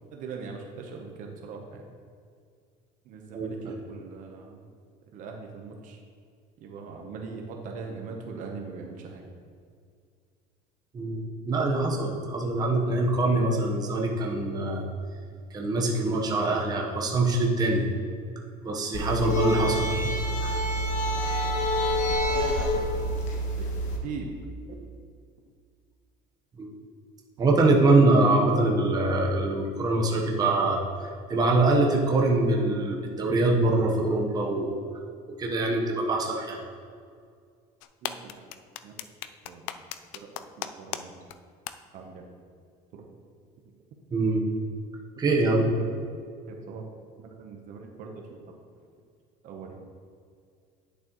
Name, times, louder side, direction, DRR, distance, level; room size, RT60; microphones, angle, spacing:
voice 1, 0.0-1.9 3.1-4.6 5.1-6.0 6.6-9.2 22.3-23.1 23.6-23.7 24.0-24.3 38.0-38.4 38.8-38.9 39.5-39.7 40.1-41.1 41.9-42.2 42.9-43.1 45.6-45.9 46.5-46.8 47.2-48.2 49.4-49.8, right 5 dB, 50° right, 2 dB, 0.9 m, -41 dB
voice 2, 3.3-3.8 10.9-14.8 15.5-17.9 18.6-20.1 20.4-20.6 26.6-26.7 27.4-30.8 31.3-34.7 35.4-36.6 44.1-44.4 45.2-45.6, right 2 dB, 25° right, -1 dB, 1.0 m, -24 dB
sound 1, 18.9-24.0, equal, 50° left, 1.3 m, -27 dB
sound 2, 37.8-41.0 41.3-41.4 41.7-41.8, left 13 dB, 85° left, 0.4 m, -35 dB
10.0 x 6.7 x 3.0 m, 2.2 s
cardioid pair, 145°, 17 cm